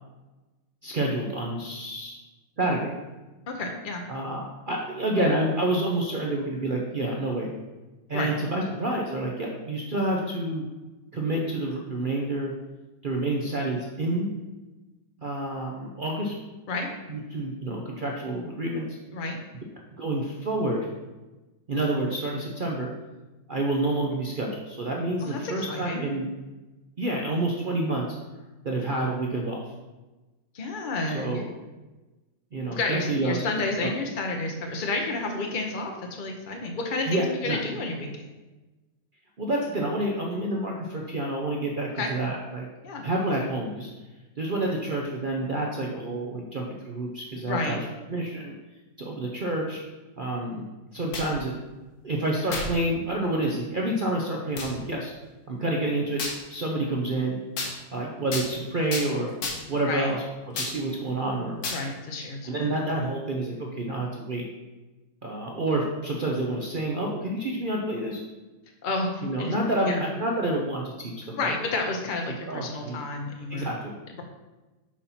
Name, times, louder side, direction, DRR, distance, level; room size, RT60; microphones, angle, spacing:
voice 1, 0.8-2.1 2.6-3.0 4.1-7.5 8.1-10.6 11.1-12.5 13.0-14.3 15.2-16.4 17.1-18.9 20.0-20.9 21.7-22.9 23.5-26.3 27.0-28.2 28.6-29.7 31.1-31.5 32.5-33.5 37.0-37.6 39.4-42.7 43.0-43.9 44.4-47.8 48.1-48.5 49.0-49.8 50.2-50.6 50.9-51.5 52.0-55.1 55.5-56.2 56.5-57.4 57.9-59.3 59.7-61.6 62.4-64.4 65.2-68.2 69.2-71.5 72.5-73.0 73.5-73.9, right 1 dB, 75° right, -1 dB, 0.4 m, -28 dB
voice 2, 3.5-4.0 8.1-8.3 16.7-16.9 19.1-19.4 25.2-26.0 30.5-31.3 32.7-38.1 42.0-42.1 42.8-43.0 47.5-47.8 59.9-60.1 61.7-62.4 68.8-69.5 69.9-70.0 71.4-73.7, left 2 dB, 60° left, 2 dB, 0.5 m, -30 dB
sound 1, 50.9-51.4 52.5-52.8 53.4-53.5 54.6-54.7 56.2-56.4 57.6-57.7 58.3-58.5 58.9-59.1 59.4-59.8 60.6-60.8 61.6-61.8, left 3 dB, 80° left, 1.9 m, -31 dB
6.3 x 4.1 x 5.7 m, 1.1 s
omnidirectional pair, 2.0 m